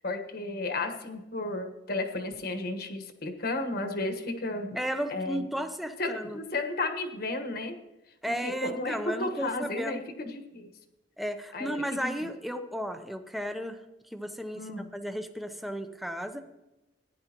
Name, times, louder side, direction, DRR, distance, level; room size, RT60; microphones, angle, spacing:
voice 1, 0.0-4.8 5.1-5.4 6.0-7.8 8.2-10.7 11.5-12.1 14.5-14.9, left 2 dB, 55° left, 6 dB, 1.4 m, -33 dB
voice 2, 4.8-6.4 8.2-10.0 11.2-13.8 14.1-16.4, equal, ahead, 7 dB, 0.7 m, -34 dB
15.5 x 10.5 x 3.0 m, 0.96 s
head